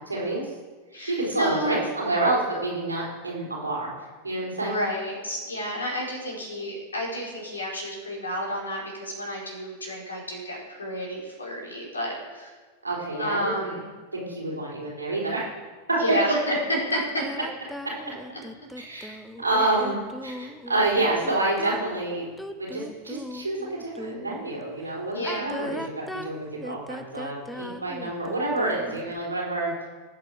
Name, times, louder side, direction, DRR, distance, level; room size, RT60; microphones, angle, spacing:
voice 1, 0.1-0.5 1.1-3.9 4.2-4.8 12.8-13.8 14.1-15.5 15.9-16.2 17.8-17.9 18.8-22.3 22.6-29.9, right 2 dB, 80° right, -4 dB, 3.8 m, -28 dB
voice 2, 0.9-1.9 4.6-12.6 13.2-13.9 16.0-17.0 19.6-19.7 25.1-25.8, equal, 75° left, -3 dB, 4.9 m, -31 dB
sound 1, 16.9-24.4 25.1-29.1, equal, ahead, 0.7 m, -39 dB
19.0 x 8.2 x 4.7 m, 1.4 s
figure-of-eight pair, 90°, 0 cm